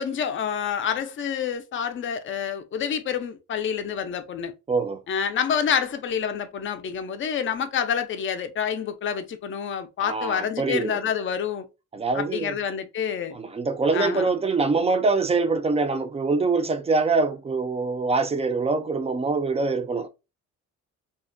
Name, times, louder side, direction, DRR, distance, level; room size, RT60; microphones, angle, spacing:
voice 1, 0.0-4.5 5.1-11.7 12.1-13.4 13.9-14.3, left 7 dB, 40° left, 0.5 m, -28 dB
voice 2, 4.7-5.0 10.0-11.0 11.9-12.5 13.3-20.1, right 4 dB, 20° right, 0.4 m, -24 dB
2.4 x 2.1 x 2.5 m
cardioid pair, 90°, 30 cm